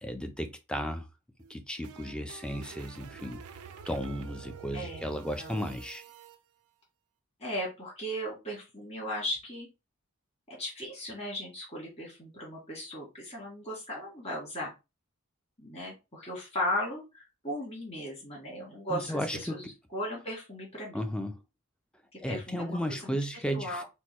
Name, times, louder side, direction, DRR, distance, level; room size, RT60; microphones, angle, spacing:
voice 1, 0.0-1.1 1.5-3.4 3.9-6.0 18.9-19.6 20.9-21.4 22.2-23.8, equal, 5° left, 0.5 m, -34 dB
sound 1, 1.4-6.4, right 7 dB, 70° right, 0.5 m, -48 dB
voice 2, 4.7-5.6 7.4-9.7 10.5-14.7 15.6-21.0 22.3-23.2 23.5-23.8, equal, 30° left, 2.2 m, -37 dB
4.4 x 2.2 x 4.3 m
head